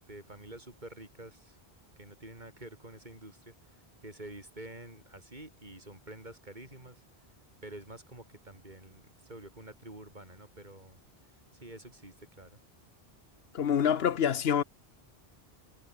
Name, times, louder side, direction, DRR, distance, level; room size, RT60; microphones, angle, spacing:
voice 1, 0.1-1.6 2.0-7.0 7.6-11.0 11.6-12.6, right 1 dB, 45° right, 5.0 m, -48 dB
voice 2, 13.5-14.6, left 8 dB, 70° left, 1.1 m, -26 dB
omnidirectional pair, 1.1 m